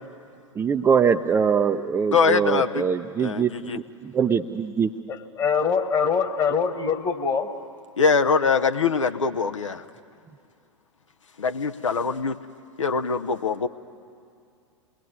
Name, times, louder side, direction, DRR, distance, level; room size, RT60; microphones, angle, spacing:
voice 1, 0.6-4.9, right 6 dB, 15° right, 4 dB, 0.6 m, -23 dB
voice 2, 2.1-2.8 3.2-3.8 8.0-9.8 11.4-12.3 12.8-13.7, left 5 dB, 70° left, 7 dB, 0.9 m, -23 dB
voice 3, 5.1-7.5, left 6 dB, 25° left, 6 dB, 1.5 m, -24 dB
28.5 x 21.0 x 9.7 m, 2.4 s
figure-of-eight pair, 100°, 16 cm